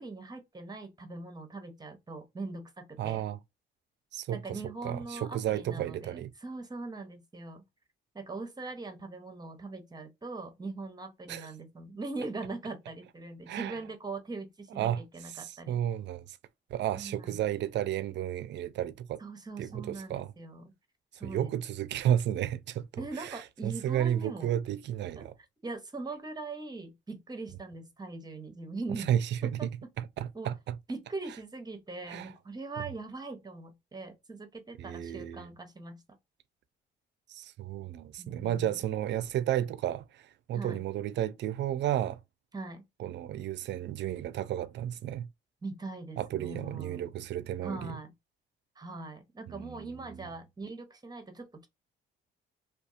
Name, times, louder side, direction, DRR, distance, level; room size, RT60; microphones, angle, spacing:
voice 1, 0.0-3.2 4.3-7.6 8.1-15.8 16.9-17.4 19.2-20.7 21.2-21.6 23.0-24.6 25.2-25.3 25.6-29.1 29.4-29.7 30.3-30.5 30.9-36.2 38.2-38.8 40.5-40.8 42.5-42.8 45.6-47.1 47.6-48.1 48.8-51.7, right 3 dB, 20° right, 0.8 m, -41 dB
voice 2, 3.0-3.4 4.1-4.4 4.8-6.3 11.3-11.5 13.5-13.8 14.8-16.4 16.7-19.2 19.6-20.3 21.2-25.3 29.0-29.7 30.0-30.7 32.1-32.3 34.8-35.5 37.3-42.2 43.0-45.3 46.2-47.9 49.5-50.2, right 11 dB, 65° right, 0.4 m, -33 dB
2.6 x 2.3 x 2.5 m
cardioid pair, 90°, 20 cm